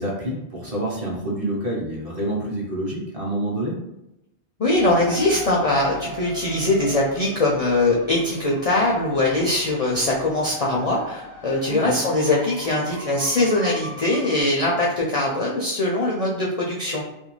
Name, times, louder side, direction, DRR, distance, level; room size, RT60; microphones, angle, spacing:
voice 1, 0.0-3.8 11.7-12.0, right 1 dB, 40° right, -5 dB, 0.7 m, -27 dB
voice 2, 4.6-17.0, left 2 dB, 55° left, -3 dB, 0.4 m, -22 dB
sound 1, 4.7-14.4, right 1 dB, 85° right, 1.1 m, -39 dB
2.5 x 2.2 x 3.0 m, 0.90 s
omnidirectional pair, 1.1 m